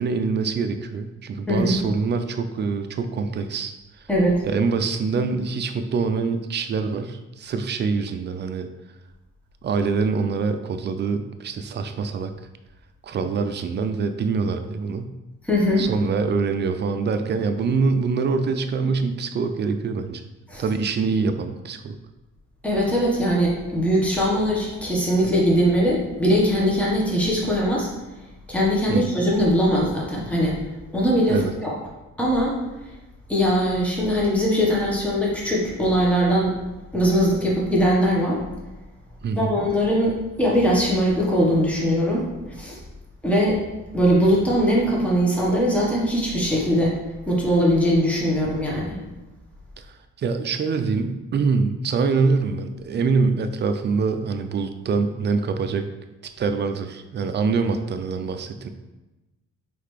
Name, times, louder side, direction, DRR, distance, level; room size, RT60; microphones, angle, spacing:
voice 1, 0.0-3.7 4.5-8.7 9.6-12.3 13.0-15.1 15.8-20.2 20.6-22.0 28.9-29.2 31.3-31.5 39.2-39.5 50.2-55.9 56.4-58.7, right 4 dB, 35° right, 8 dB, 0.4 m, -24 dB
voice 2, 4.1-4.4 15.4-15.9 20.5-20.6 22.6-27.9 28.5-30.6 30.9-31.7 32.2-32.5 33.3-36.6 36.9-38.4 39.3-42.3 42.6-42.8 43.2-43.6 43.9-46.9 47.3-49.0, equal, 5° left, -4 dB, 1.1 m, -21 dB
3.9 x 3.2 x 3.2 m, 1.1 s
cardioid pair, 90°, 30 cm